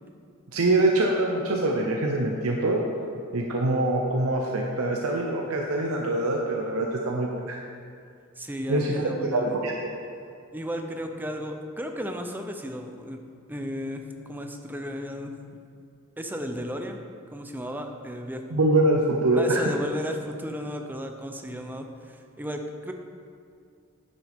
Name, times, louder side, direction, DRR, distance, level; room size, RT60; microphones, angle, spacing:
voice 1, 0.5-2.8 3.3-7.6 8.7-9.9 18.5-19.6, right 2 dB, 80° right, 0 dB, 0.8 m, -24 dB
voice 2, 8.4-9.6 10.5-13.2 13.5-15.3 16.2-17.0 17.3-18.4 19.4-22.9, equal, 10° right, 4 dB, 0.5 m, -34 dB
9.6 x 7.5 x 3.6 m, 2.4 s
head